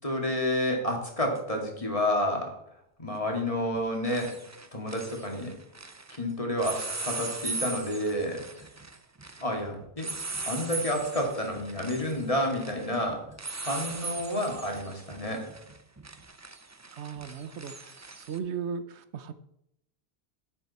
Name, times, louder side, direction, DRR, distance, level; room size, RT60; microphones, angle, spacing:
voice 1, 0.0-2.5 3.0-4.3 4.7-5.5 6.1-8.7 9.4-10.1 10.4-13.2 13.6-15.4, left 1 dB, 30° left, 1 dB, 2.3 m, -30 dB
sound 1, 1.3-1.4 3.2-3.5 3.7-6.2 6.6-18.4, right 3 dB, 20° right, 0.5 m, -39 dB
voice 2, 16.9-19.3, right 6 dB, 90° right, 12 dB, 1.1 m, -37 dB
11.0 x 8.0 x 4.2 m, 0.79 s
omnidirectional pair, 1.1 m